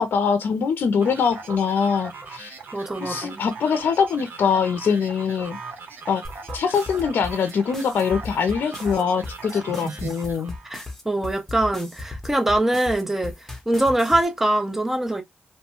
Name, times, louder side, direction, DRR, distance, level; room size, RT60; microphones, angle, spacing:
voice 1, 0.0-2.5 3.0-5.6 6.1-6.2 6.5-10.6, left 6 dB, 70° left, 0.5 m, -23 dB
sound 1, 1.0-10.7, right 4 dB, 65° right, 1.0 m, -39 dB
voice 2, 2.7-3.4 9.7-10.1 10.6-13.3 13.7-15.2, right 1 dB, 10° right, 0.7 m, -23 dB
sound 2, 6.2-14.2, left 2 dB, 10° left, 1.0 m, -36 dB
3.0 x 2.2 x 2.9 m
cardioid pair, 90°, 4 cm